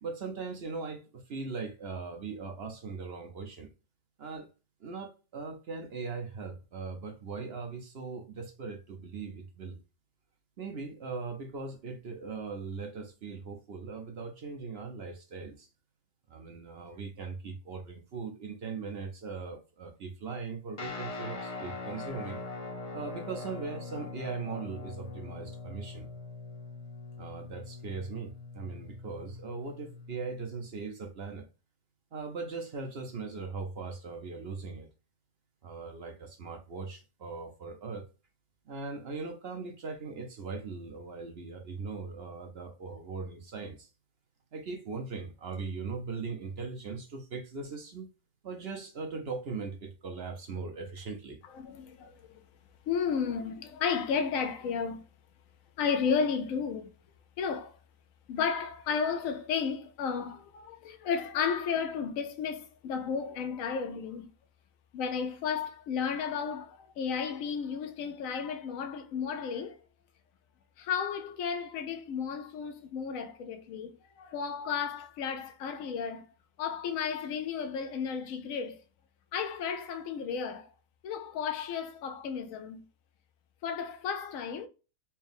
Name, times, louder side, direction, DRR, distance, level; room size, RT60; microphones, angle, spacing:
voice 1, 0.0-3.7 4.2-4.5 4.8-9.8 10.6-15.7 16.3-22.4 22.9-26.1 27.2-31.5 32.1-34.9 35.6-38.1 38.7-43.9 44.5-48.1 48.4-51.4, right 4 dB, 55° right, 0.8 m, -39 dB
Guitar, 20.8-30.2, left 3 dB, 40° left, 0.5 m, -42 dB
voice 2, 51.5-52.4 52.9-55.0 55.8-56.9 57.4-57.7 58.3-64.3 64.9-69.8 70.8-76.3 76.6-78.8 79.3-80.7 81.0-82.8 83.6-84.7, left 6 dB, 70° left, 1.0 m, -33 dB
4.5 x 2.2 x 3.4 m
omnidirectional pair, 1.6 m